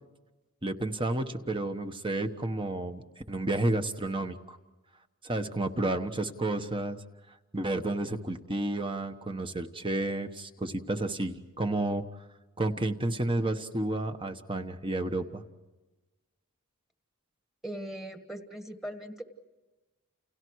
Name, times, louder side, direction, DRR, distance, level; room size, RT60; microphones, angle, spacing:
voice 1, 0.6-4.6 5.2-7.0 7.5-12.0 12.6-15.4, right 2 dB, 20° right, 7 dB, 1.2 m, -31 dB
voice 2, 17.6-19.2, right 1 dB, ahead, 6 dB, 1.6 m, -39 dB
30.0 x 30.0 x 4.8 m, 1.2 s
head